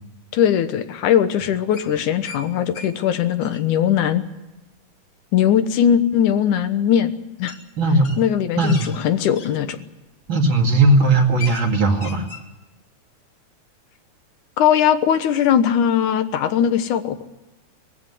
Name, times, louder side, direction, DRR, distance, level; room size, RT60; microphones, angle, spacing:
voice 1, 0.3-4.3 5.3-7.1 7.4-7.6 8.2-9.8 14.6-17.3, left 9 dB, 85° left, 10 dB, 2.7 m, -19 dB
sound 1, 1.7-2.4 2.7-2.9 3.2-3.6 5.9-6.0 7.5-7.6 8.0-9.5 10.2-10.5 10.8-10.9 11.2-11.7 11.9-12.4, left 5 dB, 40° left, 2.8 m, -37 dB
voice 2, 7.8-8.2 8.6-8.9 10.3-12.3, right 2 dB, 45° right, 3 dB, 2.8 m, -17 dB
21.0 x 15.5 x 9.8 m, 1.0 s
omnidirectional pair, 3.4 m